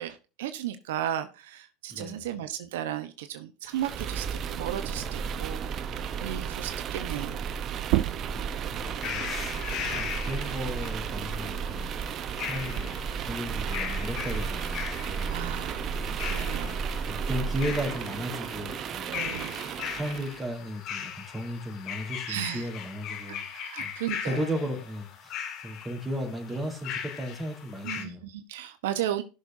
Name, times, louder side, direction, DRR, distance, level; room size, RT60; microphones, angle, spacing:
voice 1, 0.0-7.4 15.3-15.9 16.2-16.8 19.1-19.6 22.3-22.7 23.3-24.6 27.8-29.2, right 11 dB, 85° right, 9 dB, 1.0 m, -35 dB
voice 2, 1.9-2.2 8.2-9.6 9.9-16.3 16.6-19.6 19.9-23.4 23.8-23.9 24.2-28.2, equal, 15° right, 2 dB, 4.3 m, -36 dB
sound 1, 3.7-20.4, right 6 dB, 45° right, 1.0 m, -33 dB
sound 2, 7.8-13.0 13.4-15.2, right 16 dB, 70° right, 0.5 m, -35 dB
sound 3, 8.9-28.0, left 8 dB, 55° left, 2.3 m, -39 dB
17.5 x 6.6 x 2.7 m, 0.31 s
supercardioid pair, 100°, 0 cm